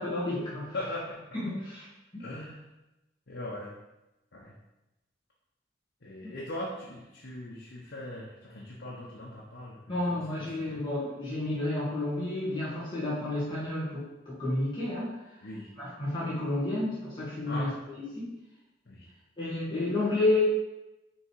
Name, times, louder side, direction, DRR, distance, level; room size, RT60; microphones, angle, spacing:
voice 1, 0.0-0.7 1.3-1.9 2.1-2.2 9.9-15.2 15.8-18.3 19.4-20.4, left 2 dB, 25° left, -9 dB, 1.8 m, -31 dB
voice 2, 0.7-1.2 2.2-2.6 3.3-3.7 4.3-4.5 6.0-10.8 15.4-15.7 17.5-17.7 18.9-19.1, left 1 dB, 80° left, -5 dB, 1.1 m, -40 dB
6.2 x 3.3 x 4.7 m, 0.98 s
head